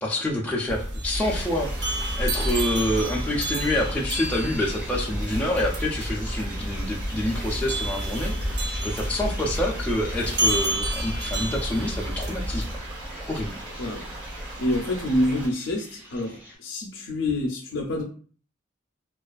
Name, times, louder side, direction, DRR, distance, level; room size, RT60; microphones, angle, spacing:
voice 1, 0.0-8.3 8.8-12.6 13.3-13.5, left 1 dB, 10° left, 0.3 m, -27 dB
sound 1, 0.7-12.8, right 1 dB, 60° right, 0.5 m, -29 dB
sound 2, 1.1-16.6, equal, 10° right, 0.8 m, -43 dB
sound 3, 1.2-15.5, right 1 dB, 80° right, 1.1 m, -38 dB
voice 2, 14.6-18.0, left 1 dB, 80° left, 0.5 m, -27 dB
2.4 x 2.3 x 2.3 m
head